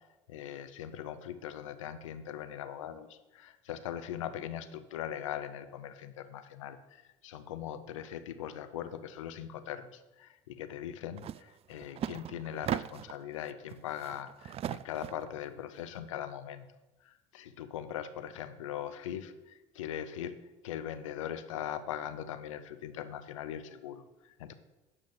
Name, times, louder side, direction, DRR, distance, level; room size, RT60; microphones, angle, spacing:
voice 1, 0.3-20.4 20.6-24.5, left 10 dB, 75° left, 10 dB, 0.8 m, -41 dB
sound 1, 11.2-11.4 11.7-13.2 13.7-15.3, right 10 dB, 40° right, 0.4 m, -38 dB
9.7 x 5.3 x 7.1 m, 1.0 s
hypercardioid pair, 65°, 16 cm